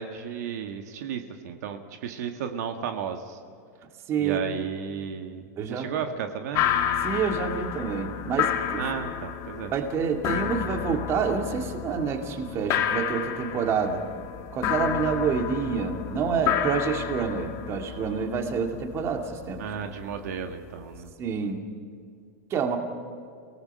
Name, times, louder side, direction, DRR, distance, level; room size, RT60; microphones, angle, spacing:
voice 1, 0.0-3.4 4.2-6.7 8.8-9.7 19.6-21.1, right 7 dB, 70° right, 5 dB, 1.6 m, -34 dB
voice 2, 4.1-4.4 5.6-5.9 7.0-8.8 9.7-14.0 14.5-19.6 21.2-21.6 22.5-22.8, right 6 dB, 30° right, 4 dB, 2.3 m, -28 dB
sound 1, 6.5-21.1, left 10 dB, 35° left, 1.8 m, -31 dB
29.0 x 18.5 x 5.6 m, 2.3 s
supercardioid pair, 140°, 9 cm